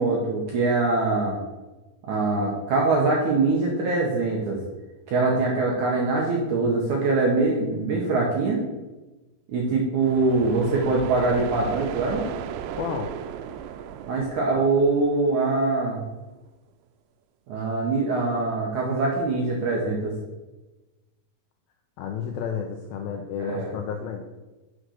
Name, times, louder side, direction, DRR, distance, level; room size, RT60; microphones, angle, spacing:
voice 1, 0.0-1.4 2.0-4.6 5.1-8.6 9.5-12.2 14.1-16.0 17.5-20.1 23.4-23.7, right 3 dB, 70° right, -2 dB, 1.9 m, -23 dB
sound 1, 10.0-15.7, right 9 dB, 90° right, 2.8 m, -36 dB
voice 2, 12.8-13.1 22.0-24.2, left 7 dB, 90° left, 4 dB, 2.1 m, -31 dB
6.3 x 6.3 x 6.5 m, 1.1 s
omnidirectional pair, 5.0 m